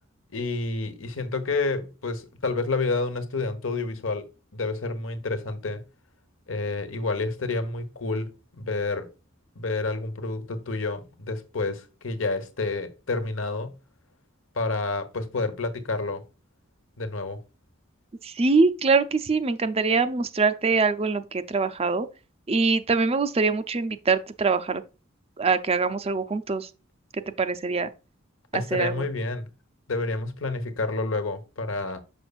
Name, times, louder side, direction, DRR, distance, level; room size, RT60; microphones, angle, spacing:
voice 1, 0.3-4.3 4.5-5.8 6.5-9.1 9.5-13.7 14.5-16.2 17.0-17.4 28.5-29.5 29.9-32.0, left 3 dB, 75° left, 1.2 m, -29 dB
voice 2, 18.2-22.1 22.5-24.8 25.4-26.7 27.4-27.9 28.5-29.1, right 4 dB, 30° right, 0.5 m, -23 dB
6.8 x 6.2 x 2.4 m
head